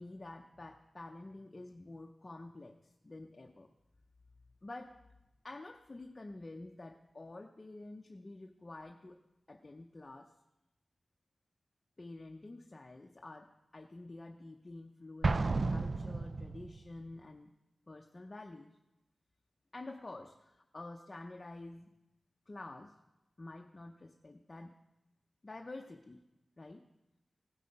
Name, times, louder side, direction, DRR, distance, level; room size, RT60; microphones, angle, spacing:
voice 1, 0.0-3.7 4.6-5.0 5.4-9.2 9.5-10.3 12.0-17.5 17.9-18.8 19.7-22.0 22.5-23.0 23.4-24.8 25.4-26.2 26.6-26.9, left 2 dB, 30° left, 3 dB, 0.7 m, -49 dB
Explosion, 15.2-16.8, right 3 dB, 50° right, 0.4 m, -32 dB
16.5 x 8.3 x 5.3 m, 0.96 s
wide cardioid pair, 110°, 0 cm